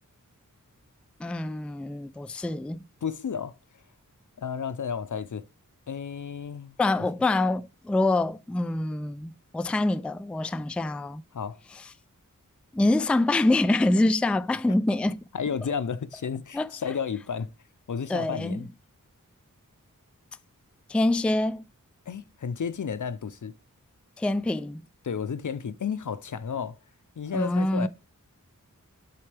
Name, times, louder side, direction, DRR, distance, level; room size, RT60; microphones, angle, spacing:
voice 1, 1.2-2.8 6.8-11.2 12.7-15.2 16.5-16.7 18.1-18.6 20.9-21.6 24.2-24.8 27.3-27.9, left 2 dB, 5° left, 0.3 m, -25 dB
voice 2, 3.0-3.6 4.4-5.4 5.9-6.7 11.3-11.6 15.3-17.5 17.9-18.7 22.1-23.5 25.0-26.8 27.2-27.9, left 6 dB, 65° left, 0.6 m, -32 dB
10.5 x 4.4 x 3.3 m
wide cardioid pair, 65°, 33 cm